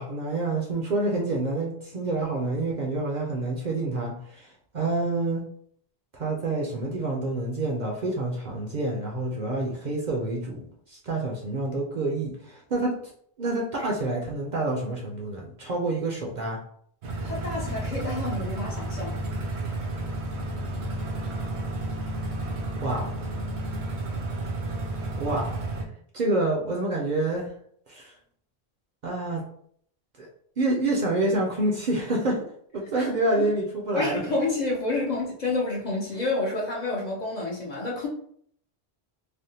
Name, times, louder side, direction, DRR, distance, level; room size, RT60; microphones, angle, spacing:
voice 1, 0.0-5.4 6.1-12.9 13.4-16.6 22.8-23.2 25.2-25.6 26.1-27.5 27.9-28.1 29.0-29.4 30.2-30.3 30.6-32.4 32.7-34.2, right 2 dB, 55° right, -1 dB, 0.6 m, -28 dB
sound 1, 17.0-25.8, right 2 dB, 80° right, 0.9 m, -31 dB
voice 2, 17.2-19.2 33.0-33.1 33.9-38.1, left 2 dB, 50° left, -3 dB, 0.6 m, -29 dB
3.3 x 2.1 x 2.7 m, 0.64 s
omnidirectional pair, 1.1 m